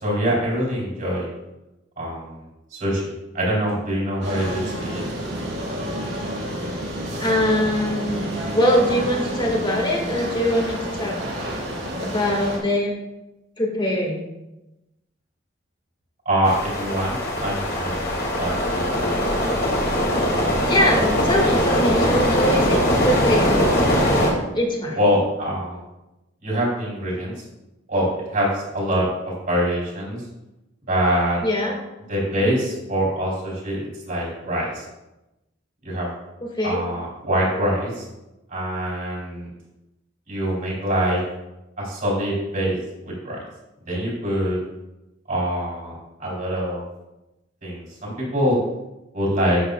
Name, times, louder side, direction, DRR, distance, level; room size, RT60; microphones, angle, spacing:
voice 1, 0.0-1.3 2.0-2.4 2.7-5.0 16.3-18.1 18.4-19.2 24.9-25.8 26.4-27.4 27.9-30.2 30.9-31.4 32.1-34.8 35.8-36.1 36.6-38.0 38.5-39.5 40.3-41.2 41.8-42.8 43.0-43.4 43.9-44.6 45.3-45.9 46.2-46.8 47.6-48.6 49.1-49.6, equal, 50° right, -6 dB, 3.4 m, -24 dB
sound 1, 4.2-12.6, equal, 65° right, 3.3 m, -29 dB
voice 2, 7.2-11.2 12.0-12.9 13.6-14.2 20.7-23.6 24.5-25.0 31.4-31.7 36.6-36.8, equal, 25° left, 0 dB, 1.9 m, -22 dB
sound 2, 16.4-24.3, equal, 55° left, 2.4 m, -21 dB
11.5 x 8.1 x 2.4 m, 0.98 s
head